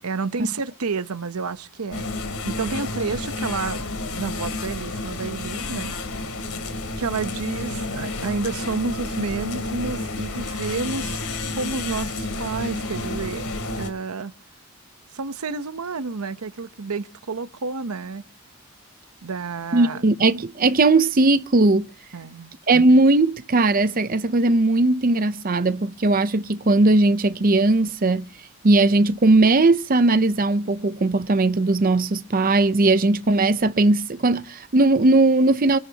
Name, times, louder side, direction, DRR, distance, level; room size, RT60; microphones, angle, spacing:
voice 1, 0.0-3.9 4.1-6.0 7.0-11.2 11.5-13.5 13.8-14.3 15.1-18.2 19.2-20.1 22.1-22.5, right 4 dB, 85° right, 0.9 m, -30 dB
sound 1, 1.9-13.9, left 2 dB, 80° left, 3.0 m, -30 dB
voice 2, 19.7-21.9 22.7-28.3 28.6-35.8, right 2 dB, 40° right, 0.6 m, -18 dB
26.0 x 11.5 x 2.9 m
head